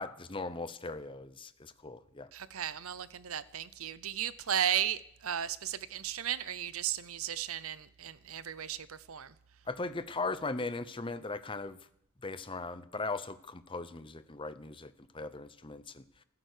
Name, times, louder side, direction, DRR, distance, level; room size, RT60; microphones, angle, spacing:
voice 1, 0.0-2.3 9.7-11.8 12.2-16.0, left 3 dB, 20° left, 0.7 m, -38 dB
voice 2, 2.3-9.3, right 10 dB, 70° right, 0.7 m, -35 dB
15.5 x 13.5 x 6.6 m
head